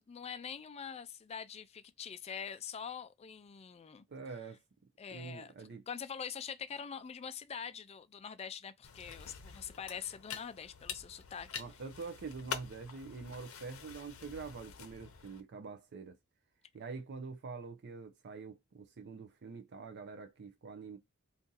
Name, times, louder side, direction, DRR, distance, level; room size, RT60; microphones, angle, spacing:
voice 1, 0.0-4.0 5.0-5.5 5.9-11.5, left 7 dB, 30° left, 0.3 m, -44 dB
voice 2, 4.1-4.6 5.1-5.8 11.6-16.2 16.7-21.0, right 4 dB, 55° right, 0.5 m, -45 dB
sound 1, 8.8-15.4, left 7 dB, 75° left, 0.7 m, -46 dB
2.7 x 2.5 x 3.8 m
head